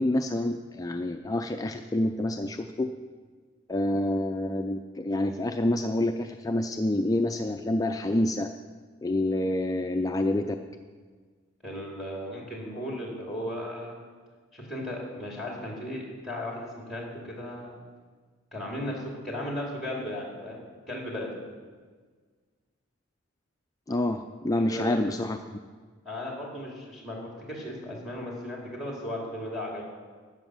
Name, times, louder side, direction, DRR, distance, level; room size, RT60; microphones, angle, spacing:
voice 1, 0.0-2.9 3.7-8.5 9.0-10.5 23.9-25.4, left 1 dB, 15° left, 5 dB, 0.4 m, -27 dB
voice 2, 11.6-14.0 14.5-17.8 18.5-21.4 24.5-25.1 26.0-29.8, left 1 dB, ahead, -2 dB, 2.6 m, -36 dB
13.0 x 8.0 x 6.1 m, 1.5 s
head